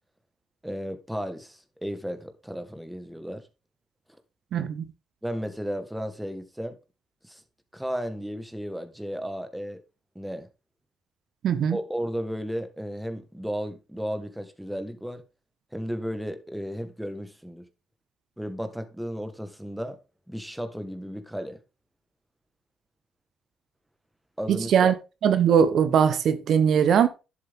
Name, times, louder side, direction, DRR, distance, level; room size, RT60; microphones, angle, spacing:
voice 1, 0.6-3.4 5.2-6.8 7.2-7.4 7.7-9.8 10.1-10.5 11.7-15.2 15.7-17.6 18.4-20.0 20.3-21.6 24.4-24.9, equal, 5° right, 1.6 m, -34 dB
voice 2, 4.5-4.8 11.4-11.8 24.5-24.9 25.2-27.1, right 8 dB, 65° right, 0.9 m, -20 dB
11.0 x 7.6 x 3.7 m
cardioid pair, 90°, 0 cm